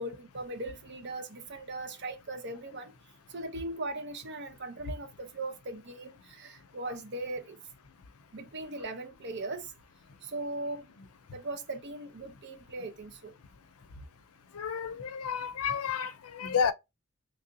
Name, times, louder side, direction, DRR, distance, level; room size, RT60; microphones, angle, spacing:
voice 1, 0.0-2.9 3.3-7.6 8.3-9.7 10.2-10.9 11.3-13.3, right 2 dB, 55° right, 0.7 m, -39 dB
voice 2, 14.5-16.7, left 7 dB, 90° left, 0.5 m, -31 dB
3.2 x 2.6 x 2.6 m
head